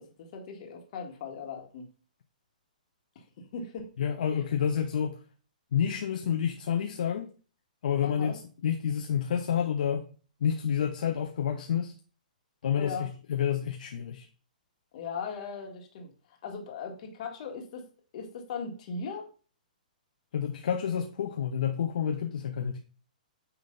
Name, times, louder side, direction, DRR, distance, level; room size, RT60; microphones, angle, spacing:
voice 1, 0.0-1.9 3.2-3.3 3.5-3.9 8.0-8.4 12.7-13.1 14.9-16.1 16.4-17.9 18.1-19.3, left 5 dB, 50° left, 1.9 m, -38 dB
voice 2, 4.0-5.1 5.7-7.3 7.8-10.0 10.4-11.9 12.6-14.3 20.3-22.8, left 8 dB, 70° left, 0.7 m, -29 dB
9.0 x 3.2 x 3.9 m
hypercardioid pair, 135°, 5 cm